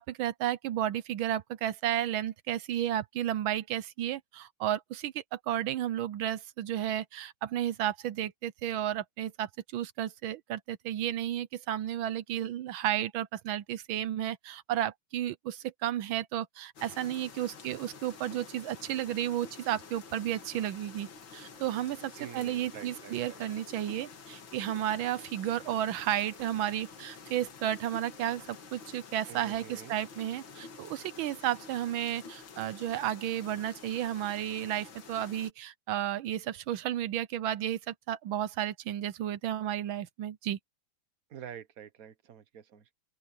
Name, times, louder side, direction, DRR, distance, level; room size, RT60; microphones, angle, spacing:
voice 1, 0.0-40.6, right 12 dB, 80° right, 1.5 m, -33 dB
sound 1, 16.8-35.5, left 5 dB, 75° left, 2.6 m, -49 dB
voice 2, 22.2-23.4 29.3-29.9 41.3-42.9, right 8 dB, 50° right, 1.6 m, -47 dB
open air
omnidirectional pair, 2.2 m